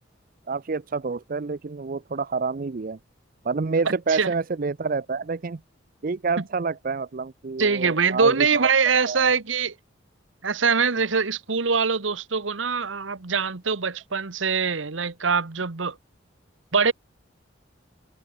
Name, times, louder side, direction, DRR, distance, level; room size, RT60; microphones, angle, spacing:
voice 1, 0.5-3.0 3.4-5.6 6.0-8.7 9.1-9.3, right 4 dB, 45° right, 0.5 m, -28 dB
voice 2, 7.6-9.7 10.4-16.0 16.7-16.9, right 5 dB, 85° right, 1.3 m, -23 dB
head